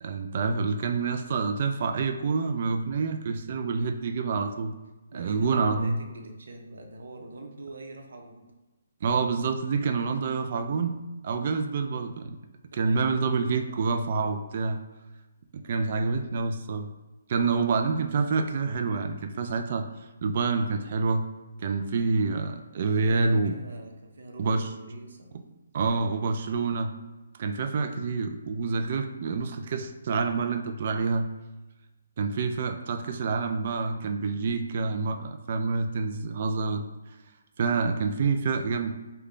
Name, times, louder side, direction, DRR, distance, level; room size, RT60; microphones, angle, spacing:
voice 1, 0.0-4.7 5.1-6.0 9.0-11.0 11.2-12.4 12.7-14.8 15.5-16.9 17.3-19.9 20.2-21.3 21.6-23.5 24.4-24.7 25.7-26.9 27.4-31.3 32.2-36.8 37.6-38.9, right 4 dB, 45° right, 6 dB, 0.3 m, -27 dB
voice 2, 5.1-8.5 12.7-14.0 22.8-25.3, right 2 dB, 70° right, 2 dB, 0.8 m, -45 dB
3.3 x 2.2 x 3.7 m, 1.1 s
hypercardioid pair, 160°, 0 cm